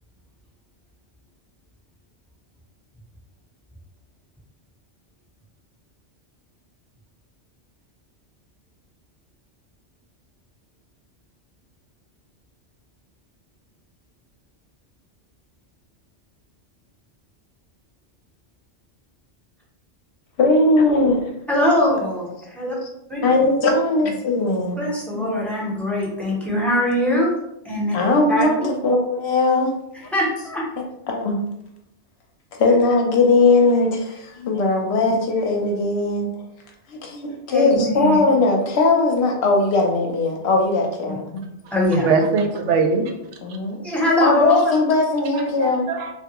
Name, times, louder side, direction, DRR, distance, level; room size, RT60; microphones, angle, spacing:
voice 1, 20.4-21.2 23.2-24.8 25.1-25.2 27.9-29.7 30.0-30.1 31.1-31.4 32.6-36.3 36.9-41.4 42.7-42.9 43.4-43.8 44.2-45.9, left 3 dB, 70° left, 1 dB, 0.8 m, -19 dB
voice 2, 21.5-22.8 23.1-23.2 24.0-24.1 24.8-27.3 27.6-27.9 28.3-28.5 30.1-30.6 37.5-38.2 41.1-41.2 41.7-42.1 43.8-44.7 45.6-45.7, left 1 dB, ahead, -5 dB, 0.8 m, -22 dB
voice 3, 41.9-43.1 45.3-46.1, right 4 dB, 85° right, 3 dB, 0.9 m, -21 dB
3.3 x 2.3 x 2.9 m, 0.82 s
omnidirectional pair, 1.2 m